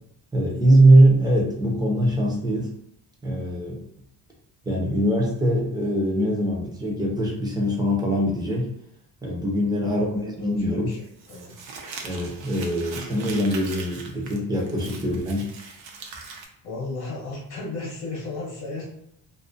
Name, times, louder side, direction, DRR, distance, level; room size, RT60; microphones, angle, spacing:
voice 1, 0.3-2.7 3.2-3.8 4.6-8.7 9.2-10.9 12.0-15.5, right 1 dB, 10° right, -3 dB, 0.4 m, -22 dB
voice 2, 9.8-11.6 13.0-13.1 16.6-18.8, left 3 dB, 55° left, -2 dB, 0.9 m, -35 dB
Crumpling crinkling, 10.9-16.5, right 4 dB, 75° right, 0.6 m, -40 dB
2.5 x 2.1 x 2.4 m, 0.75 s
cardioid pair, 145°, 46 cm